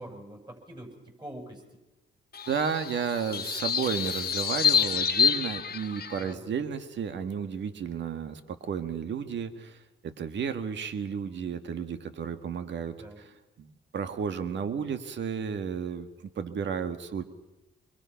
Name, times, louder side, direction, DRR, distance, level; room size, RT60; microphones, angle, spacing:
voice 1, 0.0-1.6 6.1-6.5 12.9-13.2, right 1 dB, 20° right, 3 dB, 7.6 m, -44 dB
sound 1, 2.3-6.3, left 7 dB, 50° left, 1.5 m, -28 dB
voice 2, 2.5-17.2, right 7 dB, 60° right, 9 dB, 1.8 m, -33 dB
26.0 x 22.0 x 5.8 m, 1.0 s
supercardioid pair, 65°, 21 cm